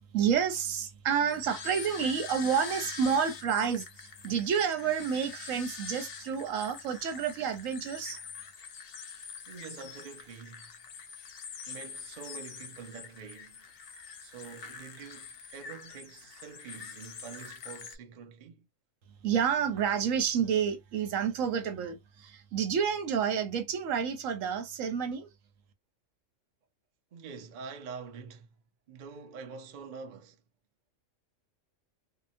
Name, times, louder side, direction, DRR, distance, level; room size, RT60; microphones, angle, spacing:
voice 1, 0.1-8.2 19.2-25.3, right 7 dB, 85° right, 1.1 m, -29 dB
sound 1, 1.3-18.0, left 6 dB, 60° left, 0.7 m, -45 dB
voice 2, 9.5-10.7 11.7-13.7 14.2-18.7 27.1-28.5 28.9-30.4, right 5 dB, 50° right, 0.6 m, -46 dB
2.8 x 2.1 x 2.5 m
omnidirectional pair, 1.3 m